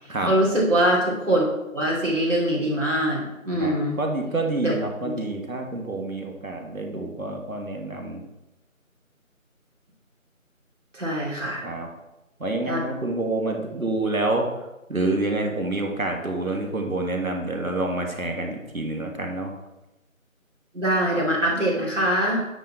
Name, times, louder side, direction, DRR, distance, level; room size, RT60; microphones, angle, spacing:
voice 1, 0.3-1.5 1.7-4.0 4.6-4.7 5.0-5.1 10.9-11.6 12.7-12.8 20.7-22.4, right 1 dB, 60° right, -4 dB, 2.8 m, -23 dB
voice 2, 3.6-8.2 11.6-11.9 12.4-14.4 14.9-19.5, right 2 dB, 75° right, 2 dB, 1.7 m, -27 dB
9.0 x 4.0 x 4.5 m, 0.94 s
figure-of-eight pair, 175°, 41 cm